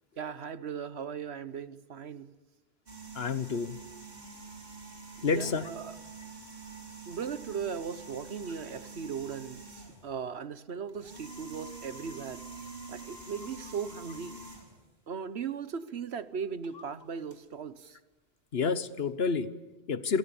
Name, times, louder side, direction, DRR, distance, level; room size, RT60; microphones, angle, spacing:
voice 1, 0.2-2.3 5.2-6.0 7.1-12.4 12.9-14.4 15.1-18.0, right 6 dB, 80° right, 1.3 m, -38 dB
sound 1, 2.9-10.2 10.9-14.9 16.6-16.8 17.3-17.4, right 3 dB, 60° right, 4.0 m, -46 dB
voice 2, 3.1-3.8 5.2-5.7 18.5-20.2, left 5 dB, 70° left, 1.4 m, -30 dB
28.0 x 27.0 x 7.1 m
omnidirectional pair, 1.1 m